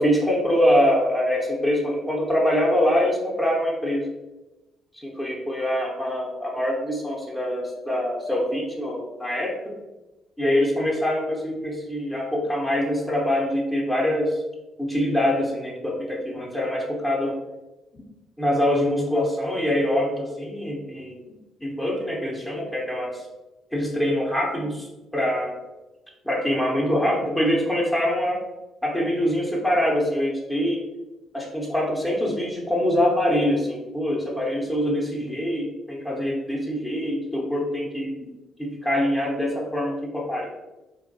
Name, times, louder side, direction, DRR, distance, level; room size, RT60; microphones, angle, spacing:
voice 1, 0.0-4.1 4.9-9.8 10.4-14.4 14.8-17.4 18.4-21.2 21.6-23.3 23.7-24.9 25.1-25.6 26.2-28.4 28.8-30.8 31.3-38.3 38.6-40.5, equal, 10° left, -3 dB, 0.7 m, -24 dB
2.5 x 2.2 x 2.6 m, 1.0 s
hypercardioid pair, 60°, 0 cm